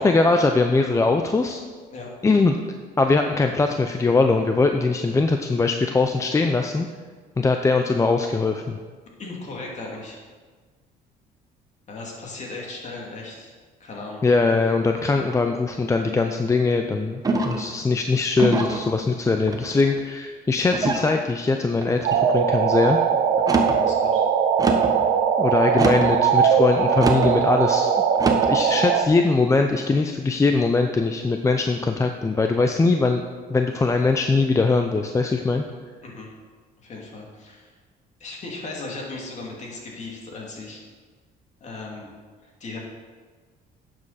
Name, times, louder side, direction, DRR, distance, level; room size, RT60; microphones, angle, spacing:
voice 1, 0.0-1.6 2.2-2.6 3.0-6.9 7.4-8.8 14.2-23.0 25.4-27.9 28.5-33.2 33.5-35.6, left 3 dB, 20° left, 5 dB, 0.5 m, -21 dB
voice 2, 9.2-10.2 11.9-13.5 13.8-14.3 23.7-24.3 36.0-36.3 36.8-37.7 38.2-40.8 41.6-42.1 42.6-42.8, left 3 dB, 45° left, -1 dB, 2.6 m, -37 dB
sound 1, 17.2-17.7 18.4-18.8 19.5-20.0 20.7-21.1 21.8-22.2 23.3-23.8 24.6-25.0 25.7-26.2 27.0-27.3 28.2-28.6, right 3 dB, 20° right, 1.1 m, -25 dB
sound 2, 22.0-29.1, right 7 dB, 70° right, 0.8 m, -20 dB
11.0 x 7.6 x 4.2 m, 1.5 s
cardioid pair, 110°, 17 cm